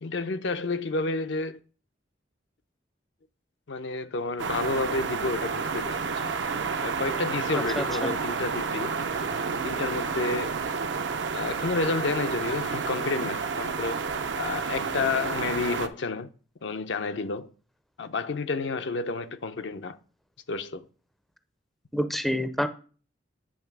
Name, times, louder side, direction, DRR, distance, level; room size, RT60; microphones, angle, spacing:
voice 1, 0.0-1.6 3.7-6.3 6.8-8.9 9.5-10.6 11.3-14.0 14.4-16.3 16.6-17.5 18.0-20.0 20.5-20.8, left 3 dB, 75° left, 0.6 m, -30 dB
sound 1, 4.4-15.9, right 5 dB, 75° right, 0.6 m, -30 dB
voice 2, 7.5-8.1 21.9-22.7, equal, ahead, 0.4 m, -28 dB
8.7 x 3.2 x 5.9 m
head